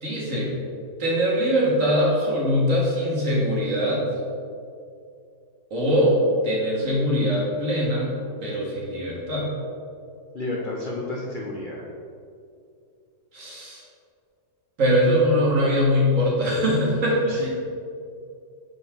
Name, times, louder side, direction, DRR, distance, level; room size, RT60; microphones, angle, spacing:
voice 1, 0.0-0.5 1.0-4.0 5.7-6.2 6.4-8.1 8.4-9.5 13.3-13.8 14.8-17.5, equal, 50° right, -4 dB, 1.7 m, -22 dB
voice 2, 10.3-11.8 17.3-17.5, left 2 dB, 50° left, -3 dB, 0.6 m, -31 dB
8.0 x 4.4 x 3.5 m, 2.4 s
omnidirectional pair, 1.8 m